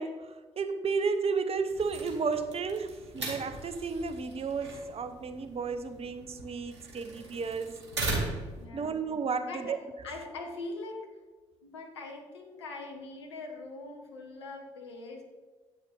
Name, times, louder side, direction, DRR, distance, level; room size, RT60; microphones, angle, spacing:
voice 1, 0.0-7.8 8.7-9.8, right 5 dB, 45° right, 10 dB, 1.0 m, -33 dB
sound 1, 1.7-8.6, right 2 dB, 85° right, 1.3 m, -39 dB
voice 2, 8.5-9.0 9.4-9.8 10.0-11.0 11.6-15.2, left 2 dB, 85° left, 1 dB, 1.1 m, -42 dB
9.2 x 8.3 x 3.8 m, 1.4 s
figure-of-eight pair, 40°, 14 cm